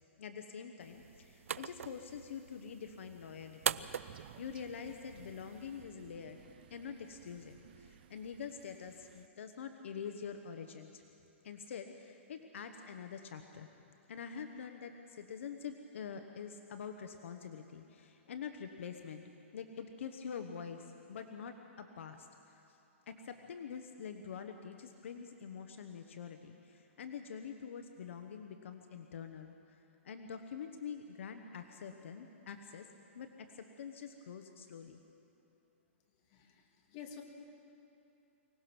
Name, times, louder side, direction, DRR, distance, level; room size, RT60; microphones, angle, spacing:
voice 1, 0.2-4.1 4.4-11.0 11.4-13.7 14.1-19.2 19.5-22.8 23.1-32.9 33.1-35.0, left 7 dB, 65° left, 6 dB, 1.2 m, -46 dB
sound 1, 0.8-5.8, right 8 dB, 85° right, 0.5 m, -42 dB
Crow, 3.6-9.3, right 11 dB, 45° right, 0.7 m, -58 dB
voice 2, 36.3-37.2, left 7 dB, 30° left, 2 dB, 2.1 m, -50 dB
24.5 x 17.5 x 6.1 m, 2.9 s
hypercardioid pair, 165°, 7 cm